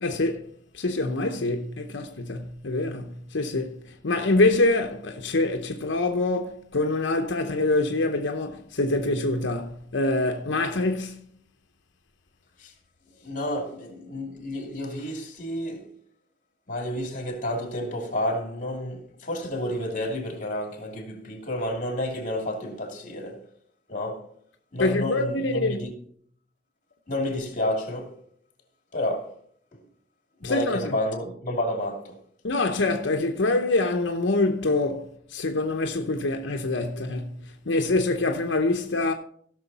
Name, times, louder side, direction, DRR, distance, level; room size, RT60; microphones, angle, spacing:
voice 1, 0.0-0.5 0.7-11.2 24.8-25.8 30.4-30.9 32.4-39.1, left 2 dB, 80° left, 0.8 m, -25 dB
voice 2, 13.2-15.9 16.7-23.5 23.9-24.3 24.7-26.0 27.1-28.2 28.9-29.3 29.7-29.8 30.4-32.2, left 1 dB, 40° left, 2.7 m, -30 dB
16.0 x 6.3 x 4.2 m
head